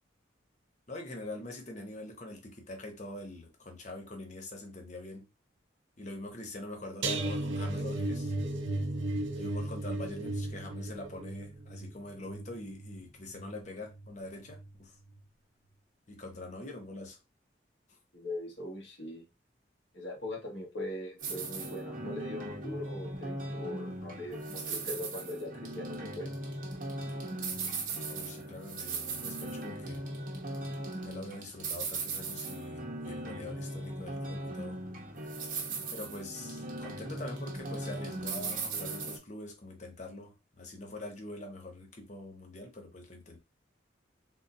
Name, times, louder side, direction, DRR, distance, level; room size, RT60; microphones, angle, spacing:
voice 1, 0.9-5.3 6.0-8.3 9.4-15.0 16.1-17.2 17.9-18.0 28.1-30.0 31.0-34.8 35.9-43.4, left 2 dB, 40° left, 0.8 m, -44 dB
sound 1, 7.0-14.1 14.4-14.8 15.1-15.2, right 2 dB, 75° right, 0.6 m, -35 dB
voice 2, 18.1-19.2 19.9-26.3, left 1 dB, 70° left, 1.5 m, -41 dB
sound 2, 21.2-39.2, right 2 dB, 45° right, 0.9 m, -38 dB
3.7 x 2.6 x 2.6 m
head